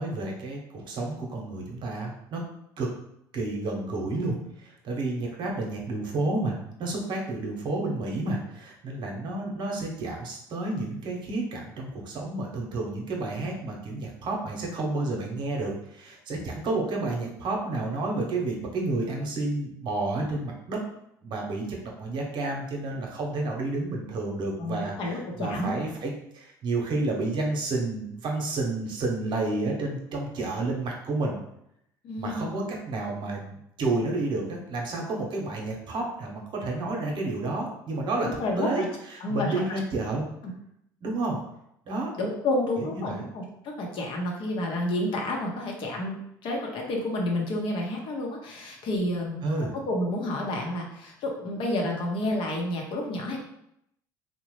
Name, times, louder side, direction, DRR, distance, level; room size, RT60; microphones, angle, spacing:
voice 1, 0.0-2.4 2.8-2.9 3.3-20.8 21.2-31.4 32.2-38.3 38.6-40.3 41.0-41.4 41.8-42.1 42.8-43.3 49.4-49.7, right 2 dB, 50° right, 0 dB, 0.8 m, -30 dB
voice 2, 24.6-25.7 32.0-32.5 38.2-38.9 39.2-39.5 40.4-40.5 42.2-49.5 49.8-53.4, left 1 dB, 60° left, 0 dB, 0.8 m, -30 dB
2.8 x 2.1 x 3.0 m, 0.76 s
hypercardioid pair, 75°, 10 cm